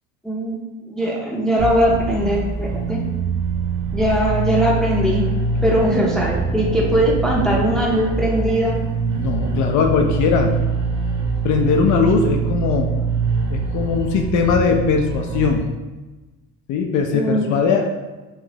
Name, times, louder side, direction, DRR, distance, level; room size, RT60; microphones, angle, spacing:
voice 1, 0.2-0.6 0.9-3.0 3.9-5.2 5.6-8.8 17.1-17.6, equal, ahead, -3 dB, 0.6 m, -20 dB
sound 1, 1.6-15.6, right 4 dB, 65° right, 0.7 m, -24 dB
voice 2, 9.2-10.6 11.4-12.9 13.5-15.6 16.7-17.9, left 6 dB, 60° left, 3 dB, 0.5 m, -19 dB
3.0 x 2.5 x 2.9 m, 1.1 s
supercardioid pair, 75°, 34 cm